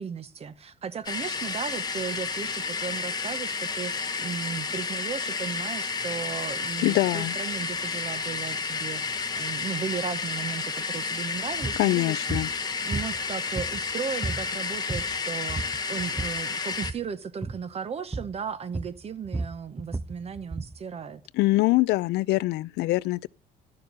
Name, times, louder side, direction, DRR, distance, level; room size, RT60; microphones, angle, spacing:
voice 1, 0.0-12.2 12.8-21.2, right 6 dB, 35° right, 1.0 m, -36 dB
sound 1, 1.1-16.9, left 4 dB, 25° left, 0.9 m, -31 dB
voice 2, 6.8-7.4 11.8-12.5 21.3-23.3, left 19 dB, 80° left, 0.4 m, -24 dB
sound 2, 11.5-11.8 12.3-12.5 12.9-13.9 14.2-14.5 14.8-15.2 15.5-16.4 16.7-17.0 17.4-17.6 18.1-18.4 18.7-20.8, right 3 dB, 10° right, 0.6 m, -33 dB
12.0 x 6.7 x 5.3 m
cardioid pair, 110°, 17 cm